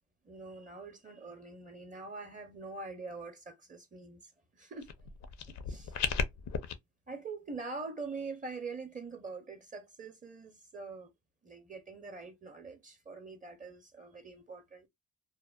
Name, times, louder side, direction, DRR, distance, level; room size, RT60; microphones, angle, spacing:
voice 1, 0.2-4.9 5.5-6.0 7.1-11.1 11.4-14.9, right 4 dB, 25° right, 0.6 m, -44 dB
sound 1, 4.8-6.7, left 7 dB, 65° left, 0.5 m, -35 dB
2.8 x 2.1 x 2.2 m
cardioid pair, 90°, 30 cm